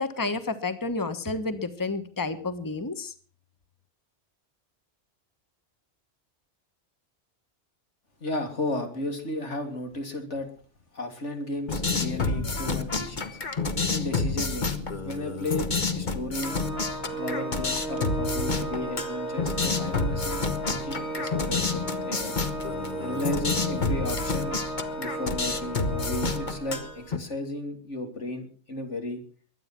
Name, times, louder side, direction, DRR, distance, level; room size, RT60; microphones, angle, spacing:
voice 1, 0.0-3.1, left 3 dB, 20° left, 10 dB, 1.3 m, -30 dB
voice 2, 8.2-10.5 10.9-13.4 13.9-15.7 16.0-16.6 17.1-22.4 23.0-24.6 25.0-29.2, left 1 dB, 90° left, 5 dB, 3.4 m, -34 dB
sound 1, 11.7-27.2, left 4 dB, 45° left, 1.4 m, -29 dB
Organ, 16.4-27.1, right 1 dB, 65° left, 6.6 m, -35 dB
22.5 x 9.5 x 6.0 m, 0.43 s
omnidirectional pair, 1.2 m